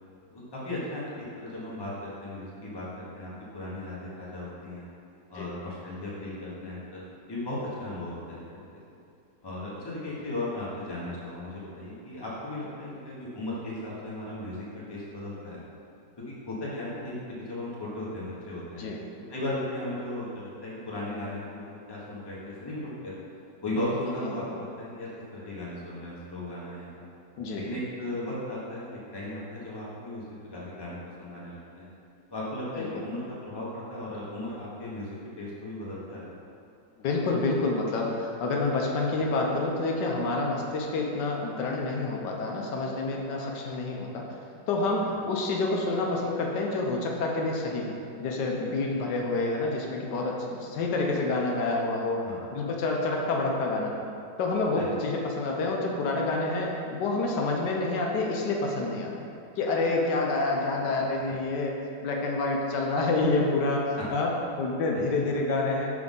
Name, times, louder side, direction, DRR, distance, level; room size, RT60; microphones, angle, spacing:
voice 1, 0.3-4.8 5.3-8.6 9.4-15.6 16.3-18.8 19.3-23.2 23.6-27.1 27.5-31.9 32.3-36.3 43.3-43.5 52.2-52.4 54.7-54.9 64.9-65.2, left 1 dB, 15° left, -7 dB, 1.0 m, -36 dB
voice 2, 27.4-27.7 32.7-33.0 37.0-44.2 44.7-52.2 52.5-53.9 54.4-59.1 59.6-61.7 62.0-65.9, left 3 dB, 80° left, -1 dB, 1.3 m, -28 dB
6.0 x 5.0 x 3.8 m, 2.5 s
omnidirectional pair, 1.9 m